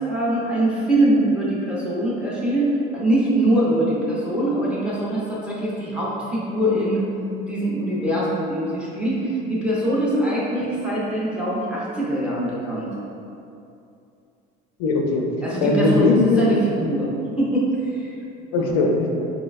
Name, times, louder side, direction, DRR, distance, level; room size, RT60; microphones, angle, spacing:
voice 1, 0.0-7.0 7.5-12.9 15.4-17.1 17.4-17.6 18.0-18.1 18.6-18.7, right 1 dB, 5° right, -8 dB, 0.4 m, -23 dB
voice 2, 14.8-15.3 15.6-16.5 18.5-19.2, left 3 dB, 85° left, 1 dB, 0.5 m, -19 dB
4.6 x 2.1 x 2.3 m, 2.6 s
cardioid pair, 165°, 20 cm